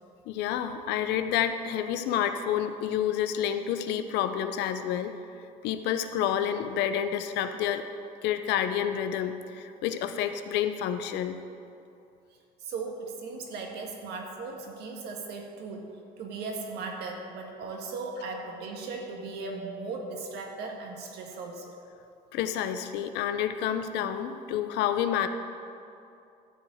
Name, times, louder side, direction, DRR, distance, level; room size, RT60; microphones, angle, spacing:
voice 1, 0.3-5.1 5.6-7.9 8.2-11.4 22.3-25.3, left 9 dB, 90° left, 9 dB, 0.7 m, -29 dB
voice 2, 12.6-15.9 16.2-21.7, right 3 dB, 75° right, 1 dB, 1.7 m, -37 dB
12.5 x 4.9 x 7.7 m, 2.7 s
cardioid pair, 110°, 17 cm